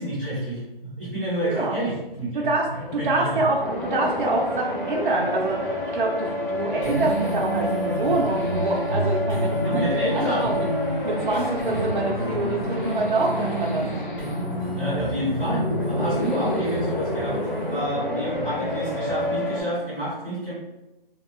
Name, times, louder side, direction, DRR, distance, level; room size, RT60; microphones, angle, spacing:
voice 1, 0.0-2.5 2.7-3.4 9.6-10.5 14.8-17.4 17.7-20.5, equal, 5° left, -14 dB, 1.2 m, -29 dB
sound 1, 1.5-19.2, left 1 dB, 55° left, 0.6 m, -42 dB
voice 2, 2.3-10.7 11.0-13.9, right 2 dB, 55° right, -2 dB, 0.5 m, -26 dB
sound 2, 3.6-19.6, left 1 dB, 25° left, 0.8 m, -29 dB
sound 3, 6.7-19.4, equal, 10° right, 0.8 m, -30 dB
2.3 x 2.2 x 3.1 m, 0.98 s
hypercardioid pair, 155°, 30 cm